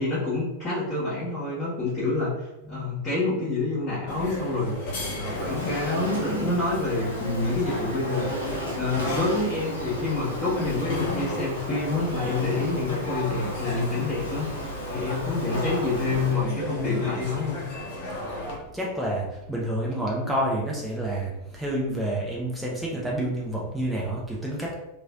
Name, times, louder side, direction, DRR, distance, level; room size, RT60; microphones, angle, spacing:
voice 1, 0.0-2.3 2.7-8.3 8.7-14.5 14.9-17.6, left 3 dB, 25° left, -11 dB, 1.4 m, -27 dB
sound 1, 4.1-18.6, left 1 dB, 45° left, 0.9 m, -35 dB
Insect, 5.3-16.3, equal, 85° left, 1.0 m, -35 dB
voice 2, 18.7-24.8, right 1 dB, 5° right, -4 dB, 0.7 m, -29 dB
3.1 x 2.7 x 2.4 m, 0.91 s
figure-of-eight pair, 90°, 0 cm